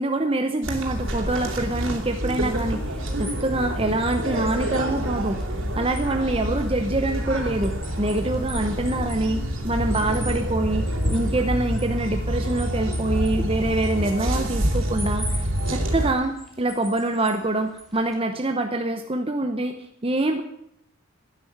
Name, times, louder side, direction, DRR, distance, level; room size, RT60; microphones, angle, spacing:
voice 1, 0.0-5.4 5.8-19.7 20.0-20.4, right 2 dB, 25° right, 5 dB, 0.8 m, -25 dB
sound 1, 0.6-16.1, equal, 60° right, 3.5 m, -27 dB
sound 2, 2.9-18.2, equal, ahead, 2.7 m, -44 dB
12.0 x 10.0 x 9.4 m, 0.78 s
head